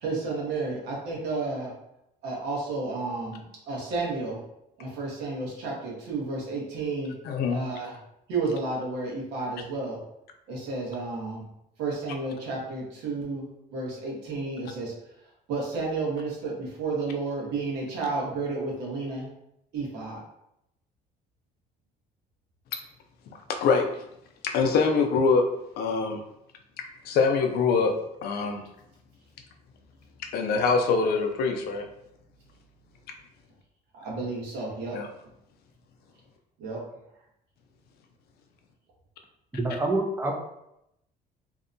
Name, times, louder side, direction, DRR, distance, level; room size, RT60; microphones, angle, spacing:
voice 1, 0.0-1.7 2.2-4.4 4.8-7.1 7.5-8.0 8.3-10.0 10.5-11.5 11.8-13.4 13.7-14.9 15.5-19.3 19.7-20.2 33.9-35.0 36.6-36.8, right 3 dB, 90° right, -3 dB, 0.9 m, -31 dB
voice 2, 7.2-7.6 23.6-23.9 24.5-25.4 25.8-26.2 27.0-27.9 28.2-28.7 30.3-31.9 34.9-35.1, left 4 dB, 65° left, 4 dB, 0.4 m, -23 dB
voice 3, 39.5-40.3, right 2 dB, 15° right, 2 dB, 0.4 m, -26 dB
2.6 x 2.1 x 2.5 m, 0.81 s
cardioid pair, 110°, 17 cm